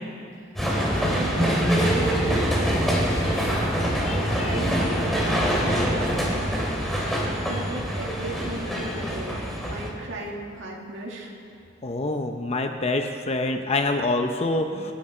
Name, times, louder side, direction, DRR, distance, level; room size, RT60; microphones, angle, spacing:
sound 1, 0.6-9.9, equal, ahead, 2.8 m, -24 dB
voice 1, 0.9-3.1 3.4-11.3, right 1 dB, 80° right, -2 dB, 2.1 m, -36 dB
voice 2, 4.0-4.6 11.8-14.9, left 2 dB, 35° left, 5 dB, 0.7 m, -26 dB
28.5 x 10.5 x 4.4 m, 2.4 s
head